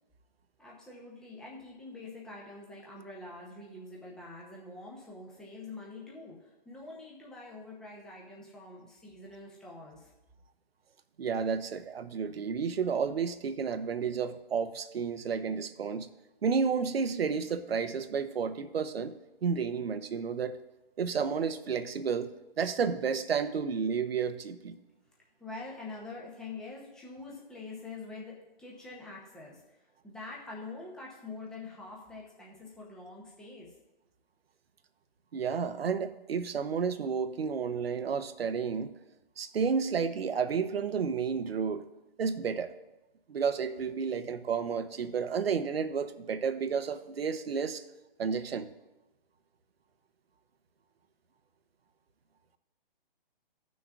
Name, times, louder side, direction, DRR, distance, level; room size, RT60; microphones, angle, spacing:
voice 1, 0.6-10.1 25.4-29.8 30.0-33.7, left 3 dB, ahead, -4 dB, 0.7 m, -45 dB
voice 2, 11.2-16.1 16.4-19.2 19.4-20.6 21.0-22.3 22.6-24.8 35.3-38.9 39.4-41.8 42.2-42.7 43.3-47.8 48.2-48.7, right 6 dB, 75° right, 11 dB, 0.8 m, -31 dB
16.0 x 6.2 x 2.4 m, 0.97 s
hypercardioid pair, 155°, 30 cm